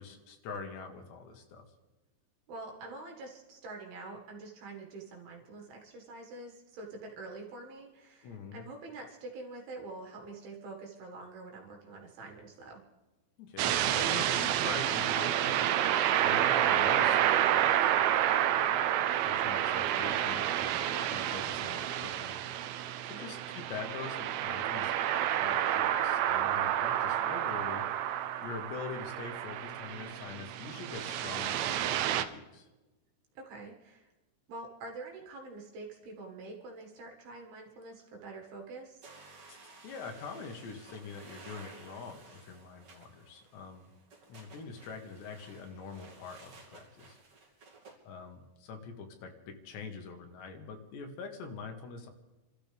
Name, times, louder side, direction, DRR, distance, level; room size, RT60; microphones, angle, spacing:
voice 1, 0.0-1.6 8.2-8.6 13.4-15.7 16.2-18.2 18.5-18.8 19.2-22.4 23.0-24.9 25.3-27.8 28.4-32.7 39.5-39.6 39.8-43.9 44.3-47.2 48.1-52.1, left 5 dB, 75° left, 4 dB, 3.6 m, -44 dB
voice 2, 2.5-12.8 23.1-23.3 33.4-34.1 34.5-39.1, right 3 dB, 65° right, 1 dB, 3.6 m, -46 dB
sound 1, 13.6-32.3, right 11 dB, 85° right, 2.9 m, -29 dB
sound 2, 39.0-48.0, right 3 dB, 40° right, 2.8 m, -55 dB
29.5 x 13.0 x 3.5 m, 1.1 s
omnidirectional pair, 5.1 m